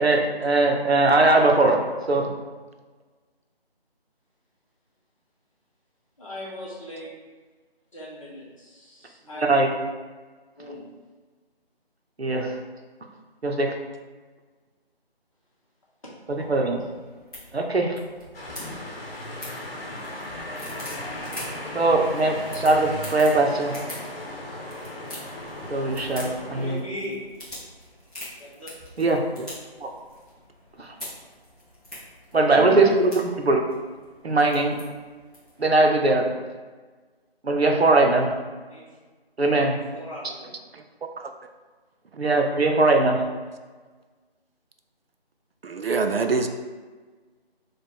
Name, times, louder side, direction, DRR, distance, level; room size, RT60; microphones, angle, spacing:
voice 1, 0.0-1.8 2.1-2.3 9.4-9.7 12.2-12.6 13.4-13.8 16.3-16.8 17.5-18.0 21.7-23.8 25.7-26.8 29.0-29.2 29.8-29.9 30.8-30.9 32.3-33.6 34.2-34.8 35.6-36.3 37.4-38.3 39.4-39.8 42.2-43.2, right 2 dB, 85° right, 2 dB, 0.8 m, -20 dB
voice 2, 6.2-7.1 7.9-9.4 10.6-10.9 26.5-27.2 28.4-28.7 38.7-38.9 39.7-40.5, left 1 dB, 30° left, -7 dB, 1.2 m, -39 dB
sound 1, 16.3-35.7, left 1 dB, 5° left, 1.0 m, -44 dB
sound 2, 18.3-26.8, left 1 dB, 65° left, 1.0 m, -36 dB
voice 3, 45.6-46.5, right 4 dB, 70° right, 6 dB, 0.4 m, -25 dB
4.5 x 2.4 x 4.5 m, 1.4 s
figure-of-eight pair, 160°, 31 cm